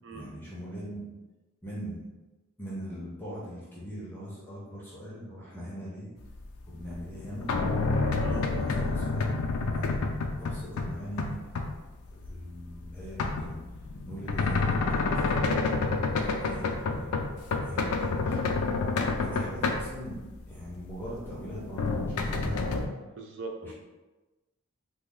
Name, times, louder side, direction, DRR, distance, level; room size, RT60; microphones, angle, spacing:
voice 1, 0.1-1.1 1.6-2.1 2.6-6.1 6.7-7.5 8.1-9.3 9.7-10.1 10.4-11.4 12.1-13.6 14.1-15.4 16.3-17.2 17.6-18.7 19.2-22.8 23.6-23.7, equal, 10° left, -7 dB, 0.6 m, -41 dB
sound 1, 6.8-10.9 11.2-11.7 12.2-20.1 20.7-22.9, left 3 dB, 75° left, 0.4 m, -28 dB
voice 2, 23.2-23.7, right 3 dB, 55° right, 3 dB, 0.4 m, -40 dB
3.1 x 2.0 x 3.6 m, 1.1 s
head